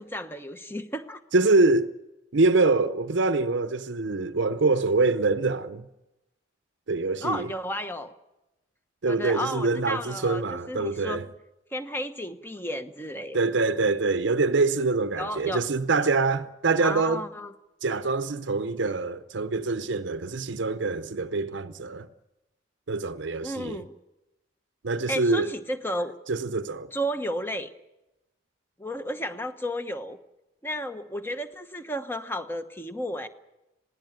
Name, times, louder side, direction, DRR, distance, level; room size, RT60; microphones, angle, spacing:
voice 1, 0.0-1.2 7.2-8.1 9.1-11.2 11.7-13.4 15.2-15.7 16.8-17.5 23.4-23.9 25.1-26.1 26.9-27.7 28.8-30.2 30.6-33.3, equal, 10° left, 1.0 m, -32 dB
voice 2, 1.3-1.9 2.3-5.9 6.9-7.5 9.0-11.3 13.3-17.2 17.8-22.1 22.9-23.8 24.8-25.5 26.3-26.9, right 3 dB, 70° right, 0.7 m, -25 dB
21.5 x 17.0 x 9.1 m
head